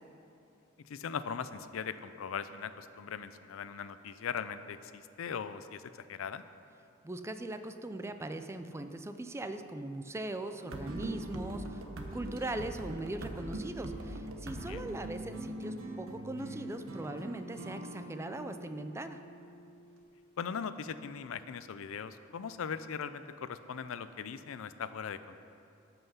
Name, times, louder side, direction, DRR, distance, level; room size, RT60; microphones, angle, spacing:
voice 1, 0.9-6.4 14.7-14.8 20.4-25.4, left 6 dB, 70° left, 13 dB, 0.4 m, -39 dB
voice 2, 7.0-11.8 12.1-19.2, right 2 dB, 15° right, 9 dB, 0.4 m, -40 dB
sound 1, 10.6-20.0, right 1 dB, 75° right, 1.1 m, -42 dB
13.5 x 5.7 x 5.6 m, 2.6 s
head